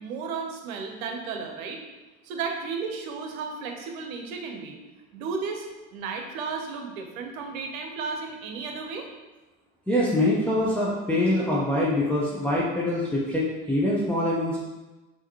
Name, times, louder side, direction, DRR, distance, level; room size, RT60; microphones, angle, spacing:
voice 1, 0.0-1.8 2.2-4.8 5.1-5.7 5.9-9.1, right 5 dB, 70° right, 3 dB, 0.9 m, -33 dB
voice 2, 9.9-14.6, left 1 dB, 5° left, -7 dB, 0.9 m, -24 dB
5.7 x 2.9 x 3.1 m, 1.1 s
hypercardioid pair, 70°, 43 cm